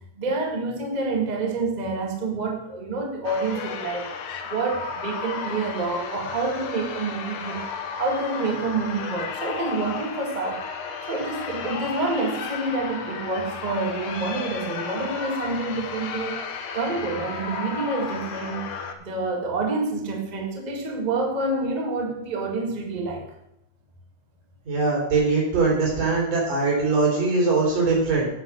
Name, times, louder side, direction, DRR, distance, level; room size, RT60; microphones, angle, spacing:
voice 1, 0.2-4.1 4.4-7.7 8.0-10.7 11.1-16.4 16.7-23.2, right 3 dB, 20° right, 1 dB, 1.2 m, -28 dB
sound 1, 3.2-18.9, left 6 dB, 80° left, 2.7 m, -33 dB
voice 2, 24.7-28.3, right 3 dB, 80° right, -3 dB, 5.8 m, -21 dB
9.7 x 8.2 x 6.3 m, 0.80 s
omnidirectional pair, 3.7 m